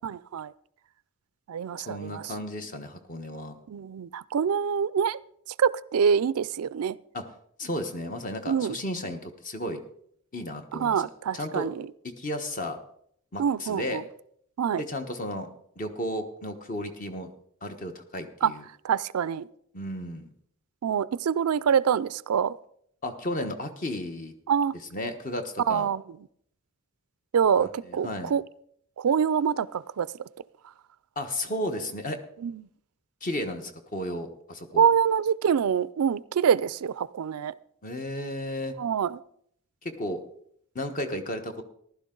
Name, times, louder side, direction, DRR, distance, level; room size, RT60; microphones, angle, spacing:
voice 1, 0.0-0.5 1.5-2.3 3.7-5.2 5.6-7.0 8.5-8.8 10.8-11.7 13.4-14.0 14.6-14.8 18.4-18.5 18.8-19.5 20.8-22.5 24.5-24.7 25.7-26.0 27.3-28.4 29.0-30.1 32.4-32.5 34.8-37.5 38.8-39.2, right 7 dB, 90° right, 19 dB, 0.4 m, -25 dB
voice 2, 1.9-3.6 7.1-7.2 7.6-9.8 10.3-11.0 11.3-11.7 12.2-12.8 13.3-14.0 14.8-15.5 15.8-17.3 17.6-18.6 19.7-20.3 23.0-24.3 24.9-25.9 27.6-28.3 31.2-32.2 33.2-34.9 37.8-38.7 39.8-40.2 40.7-41.6, left 1 dB, 40° left, 6 dB, 1.1 m, -33 dB
15.0 x 12.0 x 3.8 m, 0.68 s
head